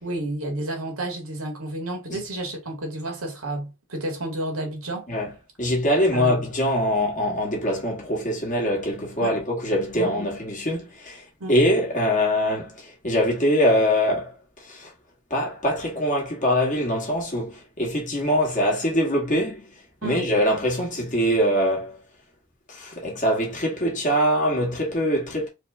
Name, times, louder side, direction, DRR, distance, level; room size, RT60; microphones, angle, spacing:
voice 1, 0.0-5.1 6.1-6.3 9.2-9.4 9.9-10.1 11.4-11.6 20.0-20.3, right 1 dB, 75° right, 1.8 m, -31 dB
voice 2, 5.1-11.2 11.5-14.3 14.7-14.9 15.3-19.8 20.0-22.0 22.7-25.5, equal, 35° left, 1.9 m, -23 dB
4.5 x 3.1 x 3.6 m
head